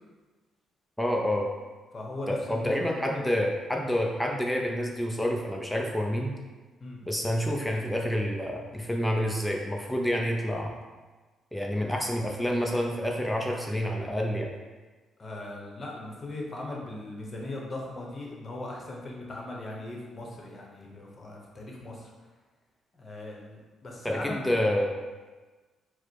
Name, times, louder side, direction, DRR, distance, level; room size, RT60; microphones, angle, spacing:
voice 1, 1.0-1.5 2.3-6.3 7.1-10.7 11.5-14.5 24.0-24.9, equal, 5° left, 0 dB, 0.5 m, -28 dB
voice 2, 1.9-3.3 6.8-7.0 15.2-22.1 22.9-24.5, left 2 dB, 35° left, -1 dB, 0.9 m, -39 dB
4.7 x 2.1 x 4.4 m, 1.3 s
cardioid pair, 90°, 0 cm